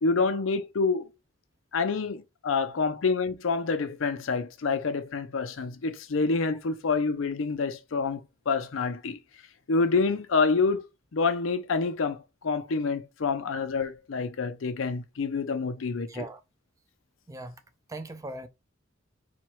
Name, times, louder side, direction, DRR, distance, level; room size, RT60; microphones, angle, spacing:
voice 1, 0.0-1.1 1.7-8.2 8.5-9.2 9.7-10.8 11.1-16.2, left 4 dB, 80° left, 0.5 m, -27 dB
voice 2, 16.1-16.4 17.3-17.6 17.9-18.5, right 2 dB, 15° right, 0.4 m, -39 dB
4.3 x 2.3 x 3.0 m
head